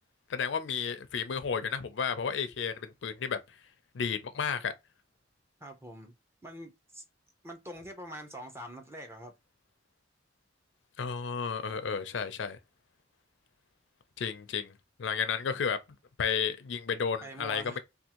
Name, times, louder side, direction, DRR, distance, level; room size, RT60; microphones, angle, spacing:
voice 1, 0.3-3.4 3.9-4.7 11.0-12.6 14.2-14.7 15.0-15.8 16.2-17.8, left 6 dB, 75° left, 0.5 m, -32 dB
voice 2, 5.6-6.1 6.4-7.0 7.4-9.3 17.2-17.8, right 1 dB, 15° right, 0.6 m, -44 dB
3.5 x 2.3 x 2.8 m
head